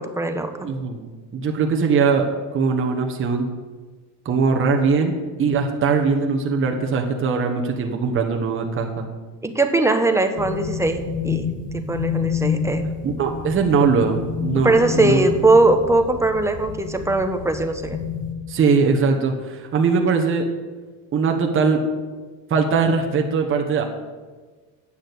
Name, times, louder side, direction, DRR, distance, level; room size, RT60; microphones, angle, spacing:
voice 1, 0.0-0.7 9.4-11.5 11.7-12.9 14.5-18.0, right 2 dB, 5° right, 6 dB, 1.0 m, -20 dB
voice 2, 0.6-2.3 2.5-3.5 4.2-9.1 13.0-15.3 18.5-20.5 21.1-21.8 22.5-23.8, right 5 dB, 30° right, 3 dB, 1.2 m, -21 dB
sound 1, 10.4-18.3, left 7 dB, 20° left, 1.6 m, -29 dB
8.6 x 6.4 x 8.2 m, 1.4 s
supercardioid pair, 110°, 42 cm